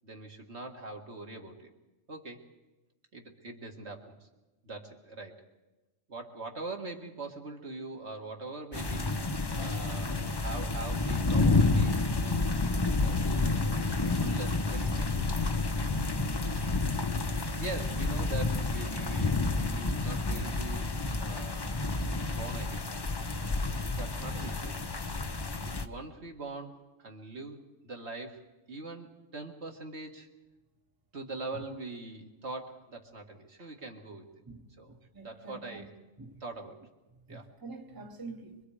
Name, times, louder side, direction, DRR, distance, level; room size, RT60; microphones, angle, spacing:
voice 1, 0.0-1.7 2.1-2.4 3.1-4.3 4.6-5.4 6.1-12.6 13.0-13.5 13.9-15.4 17.6-21.8 22.3-22.9 23.9-24.8 25.2-30.3 31.1-34.3 34.8-35.0 35.2-35.9 36.4-36.8 37.3-37.5, right 3 dB, 60° right, 2.2 m, -43 dB
sound 1, 8.7-25.9, left 3 dB, 25° left, 0.7 m, -30 dB
voice 2, 34.4-35.9 36.2-36.4 37.3-38.6, right 3 dB, 20° right, 1.3 m, -46 dB
25.0 x 23.5 x 4.9 m
omnidirectional pair, 1.3 m